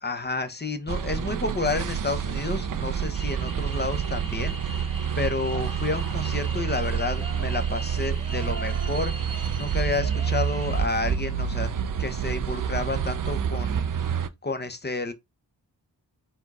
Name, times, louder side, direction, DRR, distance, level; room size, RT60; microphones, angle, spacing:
voice 1, 0.0-11.7 12.0-14.2 14.4-15.1, left 3 dB, 25° left, 0.8 m, -30 dB
sound 1, 0.9-14.3, right 7 dB, 50° right, 0.5 m, -28 dB
sound 2, 3.1-10.9, right 1 dB, 15° right, 1.1 m, -43 dB
sound 3, 5.5-6.4 7.1-7.7 8.1-9.7 10.1-10.4 10.8-11.2 11.6-12.0, right 6 dB, 85° right, 1.2 m, -46 dB
4.4 x 2.3 x 4.2 m
wide cardioid pair, 75°, 42 cm